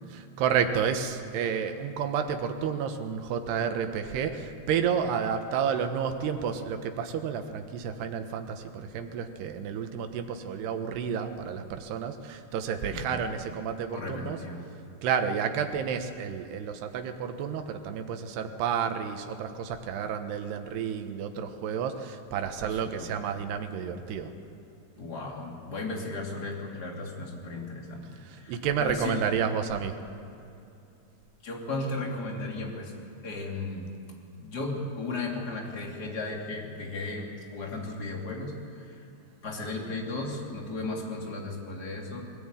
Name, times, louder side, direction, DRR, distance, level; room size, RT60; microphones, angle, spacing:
voice 1, 0.1-14.4 15.0-24.3 28.3-30.0, right 7 dB, 80° right, 7 dB, 3.3 m, -30 dB
voice 2, 12.9-13.2 13.9-14.7 22.7-23.1 25.0-28.1 28.3-29.3 31.4-32.9 33.2-33.9 34.4-39.0 39.4-42.2, left 2 dB, 25° left, -1 dB, 3.0 m, -35 dB
21.0 x 18.0 x 9.1 m, 2.7 s
omnidirectional pair, 4.7 m